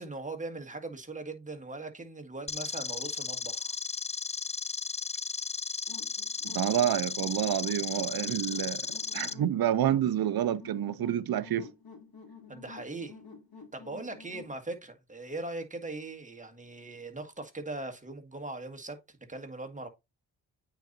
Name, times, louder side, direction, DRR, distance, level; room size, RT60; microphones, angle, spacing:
voice 1, 0.0-3.7 12.5-13.2 13.7-19.9, right 2 dB, 15° right, 1.7 m, -40 dB
sound 1, 2.5-9.3, left 5 dB, 15° left, 0.3 m, -35 dB
sound 2, 5.9-14.6, left 5 dB, 50° left, 2.5 m, -50 dB
voice 2, 6.4-8.9 9.1-11.7, right 11 dB, 50° right, 0.7 m, -28 dB
8.9 x 4.2 x 2.6 m
supercardioid pair, 40°, 46 cm